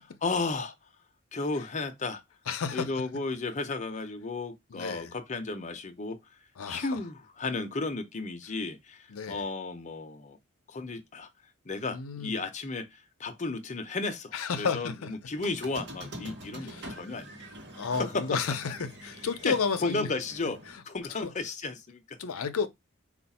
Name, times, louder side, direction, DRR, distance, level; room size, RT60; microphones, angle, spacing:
voice 1, 0.2-0.7 1.3-2.2 2.7-6.2 6.7-10.4 10.7-11.3 11.7-17.4 17.9-18.4 19.4-19.6 19.8-22.2, left 3 dB, 35° left, 0.7 m, -34 dB
voice 2, 2.5-2.9 4.7-5.1 6.6-7.0 9.1-9.4 11.9-12.4 14.3-15.1 16.6-16.9 17.8-20.1 21.2-21.3 22.2-22.7, left 5 dB, 80° left, 0.6 m, -32 dB
Squeak, 15.4-20.7, right 1 dB, 55° right, 1.0 m, -45 dB
4.4 x 2.4 x 4.1 m
head